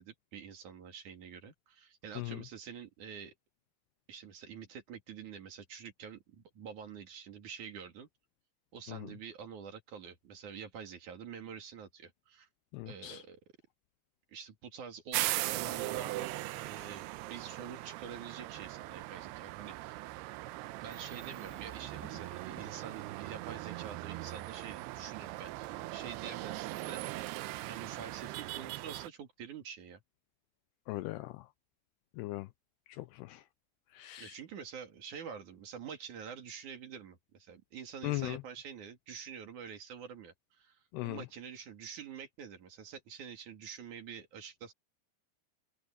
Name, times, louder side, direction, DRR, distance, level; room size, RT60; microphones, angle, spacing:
voice 1, 0.0-3.3 4.1-8.1 8.7-12.5 12.8-13.4 14.3-20.0 20.8-30.0 34.2-44.7, right 7 dB, 50° right, 3.3 m, -47 dB
voice 2, 12.7-13.2 30.9-31.3 32.2-32.5 33.0-33.4 34.0-34.3 38.0-38.4 40.9-41.2, left 19 dB, 85° left, 2.4 m, -38 dB
sound 1, 15.1-29.1, right 19 dB, 85° right, 2.4 m, -40 dB
sound 2, 20.9-26.1, equal, 5° right, 5.1 m, -57 dB
omnidirectional pair, 5.2 m